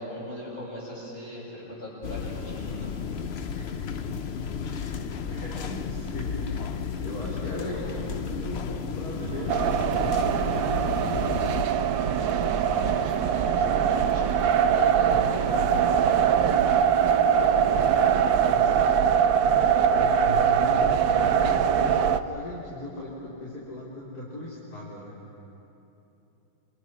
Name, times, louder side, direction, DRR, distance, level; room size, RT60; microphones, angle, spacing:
voice 1, 0.0-2.9 7.4-8.0 11.9-16.5, left 1 dB, 30° left, -12 dB, 8.2 m, -40 dB
sound 1, 2.0-11.6, left 6 dB, 70° left, 0.6 m, -33 dB
voice 2, 3.5-4.2 4.6-10.9 15.1-15.3 17.4-19.0 19.4-25.1, left 1 dB, 50° left, -6 dB, 4.1 m, -38 dB
Printer, 9.2-18.2, right 3 dB, 55° right, 1.9 m, -37 dB
sound 2, 9.5-22.2, right 8 dB, 75° right, 1.5 m, -22 dB
28.5 x 26.5 x 6.2 m, 3.0 s
omnidirectional pair, 2.2 m